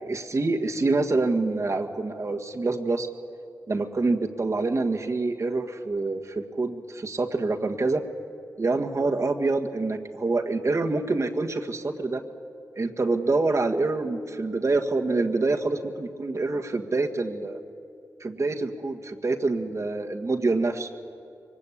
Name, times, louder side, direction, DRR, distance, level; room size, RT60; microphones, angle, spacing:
voice 1, 0.0-3.1 3.7-8.0 8.6-12.2 12.8-17.6 18.2-20.9, right 3 dB, 45° right, 2 dB, 1.6 m, -26 dB
23.0 x 20.0 x 8.5 m, 2.5 s
cardioid pair, 55°, 7 cm